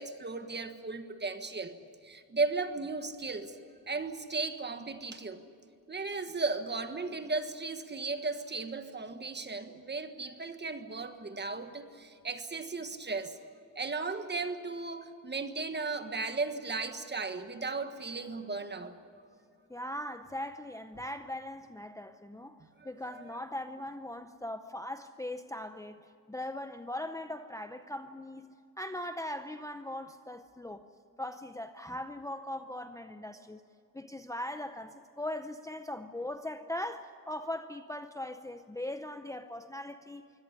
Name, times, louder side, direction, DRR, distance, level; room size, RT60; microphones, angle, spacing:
voice 1, 0.0-1.7 2.0-3.5 3.9-5.4 5.9-13.4 13.7-18.9 22.8-23.3, right 3 dB, 30° right, 1.5 m, -36 dB
voice 2, 19.7-26.0 26.3-30.8 31.2-33.6 33.9-40.3, left 1 dB, 10° left, 0.6 m, -40 dB
24.0 x 17.5 x 9.8 m
wide cardioid pair, 145°, 34 cm